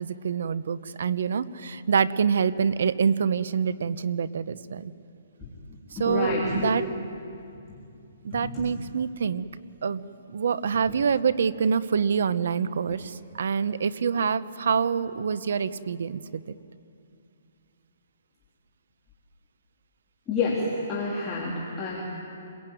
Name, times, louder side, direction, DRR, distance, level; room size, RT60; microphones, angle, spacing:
voice 1, 0.0-4.9 6.0-6.8 8.2-9.4 9.8-16.5, right 6 dB, 65° right, 16 dB, 1.0 m, -26 dB
voice 2, 5.4-6.8 7.7-7.8 8.3-8.6 20.3-22.0, left 3 dB, 10° left, -7 dB, 3.3 m, -29 dB
27.5 x 21.5 x 9.4 m, 2.6 s
hypercardioid pair, 170°, 0 cm